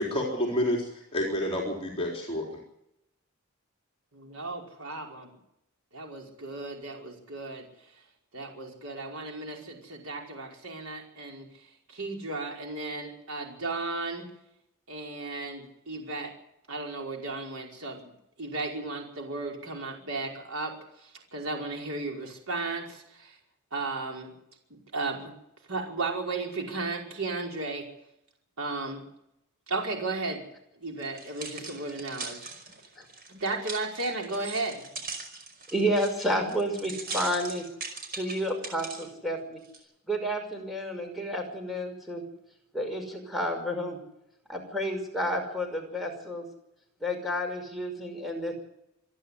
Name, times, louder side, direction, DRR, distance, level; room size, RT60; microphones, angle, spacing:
voice 1, 0.0-2.6, left 1 dB, 25° left, 0 dB, 4.1 m, -29 dB
voice 2, 4.1-5.2 5.9-7.7 8.3-11.5 11.9-14.2 14.9-16.3 16.7-18.1 18.4-20.7 21.0-23.4 23.7-24.3 24.7-25.3 25.7-27.8 28.6-29.0 29.7-30.4 30.8-32.5 33.3-34.8, right 3 dB, 75° right, 1 dB, 5.2 m, -34 dB
sound 1, 31.0-39.1 39.6-39.8, right 4 dB, 45° right, 5.2 m, -40 dB
voice 3, 35.7-37.6 38.1-39.6 40.1-42.2 42.7-44.0 44.5-46.4 47.0-48.5, equal, ahead, 3 dB, 5.6 m, -30 dB
26.5 x 11.0 x 9.9 m, 0.81 s
head